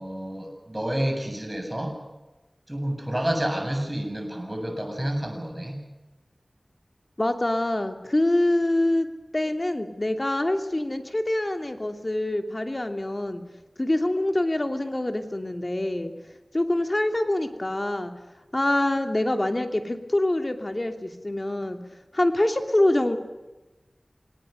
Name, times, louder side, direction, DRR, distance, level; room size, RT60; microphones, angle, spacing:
voice 1, 0.0-2.0 2.7-5.8, right 1 dB, 25° right, 3 dB, 7.9 m, -29 dB
voice 2, 7.2-9.1 9.3-13.4 13.8-16.1 16.5-18.1 18.5-21.8 22.1-23.2, left 1 dB, 40° left, 6 dB, 2.8 m, -25 dB
27.5 x 19.0 x 6.8 m, 1.1 s
wide cardioid pair, 45°, 0 cm